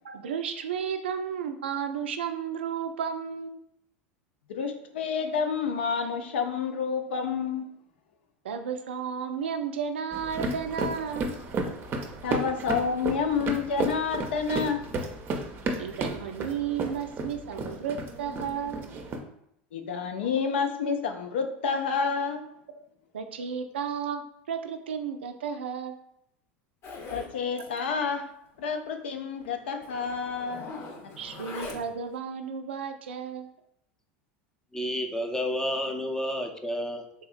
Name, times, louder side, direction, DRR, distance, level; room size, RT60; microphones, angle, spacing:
voice 1, 0.0-3.6 8.4-11.3 15.8-18.9 22.7-22.8 23.1-26.0 31.2-33.5, right 7 dB, 85° right, 8 dB, 0.3 m, -33 dB
voice 2, 4.5-7.7 12.2-14.8 19.7-22.4 27.1-28.3 28.6-30.7 31.0-31.1, left 5 dB, 80° left, 6 dB, 0.4 m, -29 dB
sound 1, 10.1-19.2, right 2 dB, 35° right, 0.5 m, -33 dB
Zipper (clothing), 26.8-27.3 27.6-27.8 28.1-28.2 28.5-28.6 29.4-29.5 29.8-32.1, left 3 dB, 50° left, 0.7 m, -41 dB
voice 3, 34.7-37.0, equal, 10° left, 4 dB, 0.5 m, -30 dB
3.6 x 2.7 x 2.4 m, 0.77 s
hypercardioid pair, 90°, 6 cm